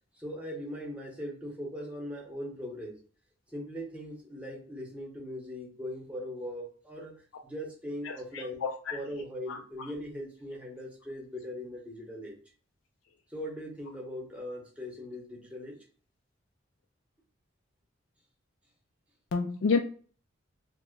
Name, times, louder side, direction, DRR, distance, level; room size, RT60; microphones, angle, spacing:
voice 1, 0.1-3.0 3.5-7.1 7.4-8.6 8.9-12.4 13.3-15.8, equal, 5° right, 0.8 m, -40 dB
voice 2, 8.1-9.0 9.5-9.6 19.3-19.8, left 4 dB, 70° left, 0.3 m, -29 dB
2.9 x 2.1 x 3.6 m
head